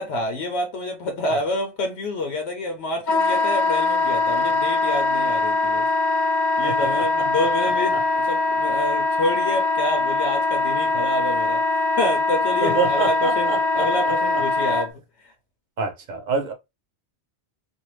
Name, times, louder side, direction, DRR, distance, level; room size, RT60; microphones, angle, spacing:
voice 1, 0.0-5.9 6.6-8.0 8.3-11.6 12.0-13.5 13.7-14.9, left 1 dB, 90° left, 1.0 m, -27 dB
Wind instrument woodwind instrument, 3.1-14.9, left 3 dB, 50° left, 0.7 m, -22 dB
voice 2, 6.6-7.2 7.9-8.0 12.6-14.7 15.8-16.5, right 4 dB, 50° right, 0.8 m, -28 dB
2.6 x 2.3 x 3.1 m
omnidirectional pair, 1.1 m